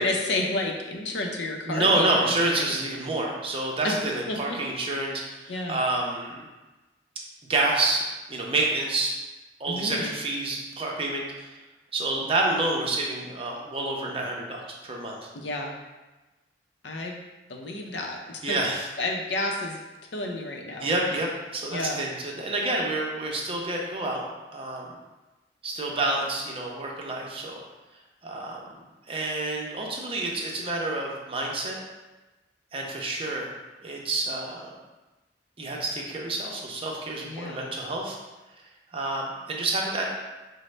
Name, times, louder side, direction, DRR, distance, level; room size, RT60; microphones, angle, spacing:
voice 1, 0.0-2.7 3.8-3.9 4.3-4.6 5.5-5.8 9.7-10.2 15.3-15.7 16.8-17.2 17.5-18.6 19.0-19.8 20.1-20.9 21.7-22.1 37.2-37.6, left 2 dB, 80° left, 1 dB, 0.6 m, -31 dB
voice 2, 1.7-6.5 7.5-9.1 9.6-11.5 11.9-15.3 18.4-18.9 20.8-24.2 24.5-24.9 25.6-27.6 28.2-28.6 29.1-31.8 32.7-33.5 33.8-34.7 35.6-38.2 38.9-40.2, right 2 dB, 35° right, -1 dB, 0.6 m, -28 dB
5.0 x 2.1 x 3.2 m, 1.1 s
head